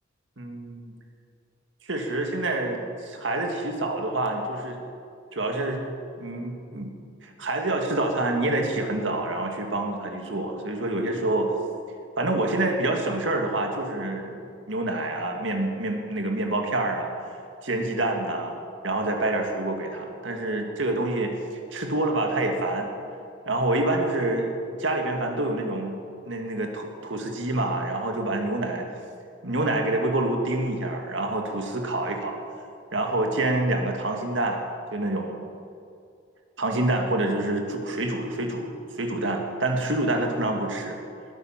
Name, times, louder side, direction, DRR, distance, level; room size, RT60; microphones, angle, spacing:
voice 1, 0.4-0.9 1.9-4.8 5.3-5.8 6.2-7.0 7.2-11.5 12.2-14.4 14.7-17.1 17.6-18.6 18.8-21.3 21.7-22.9 23.5-28.9 29.4-32.4 32.9-35.4 36.6-41.0, right 2 dB, 65° right, 3 dB, 1.9 m, -27 dB
20.0 x 9.4 x 5.8 m, 2.4 s
head